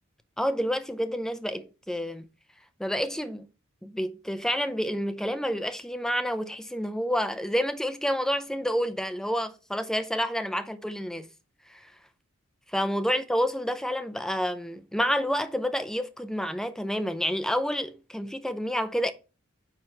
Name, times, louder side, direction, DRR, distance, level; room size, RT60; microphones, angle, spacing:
voice 1, 0.4-2.3 2.8-3.5 3.8-11.3 11.7-11.9 12.7-19.1, equal, 5° left, 0.5 m, -29 dB
9.3 x 3.1 x 5.8 m
head